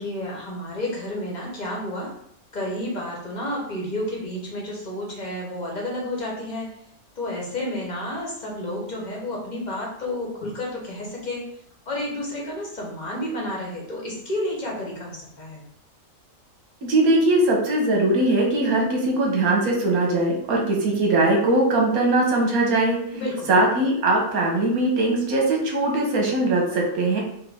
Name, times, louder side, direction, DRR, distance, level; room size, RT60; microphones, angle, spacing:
voice 1, 0.0-2.1 2.5-6.7 7.2-11.4 11.9-15.6 23.1-23.5, left 1 dB, 35° left, -2 dB, 0.9 m, -30 dB
voice 2, 16.8-23.0 23.5-27.2, right 2 dB, 85° right, -1 dB, 1.4 m, -20 dB
4.3 x 2.3 x 3.4 m, 0.72 s
omnidirectional pair, 1.5 m